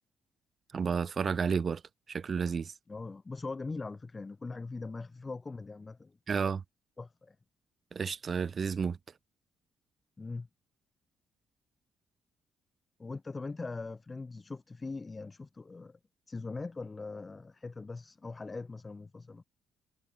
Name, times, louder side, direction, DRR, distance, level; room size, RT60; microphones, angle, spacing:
voice 1, 0.7-1.8 2.1-2.7 6.3-6.6 7.9-9.0, right 6 dB, 45° right, 2.1 m, -31 dB
voice 2, 2.9-6.5 7.0-7.3 10.2-10.5 13.0-16.0 16.3-19.4, left 3 dB, 25° left, 2.9 m, -41 dB
cardioid pair, 90°, 0 cm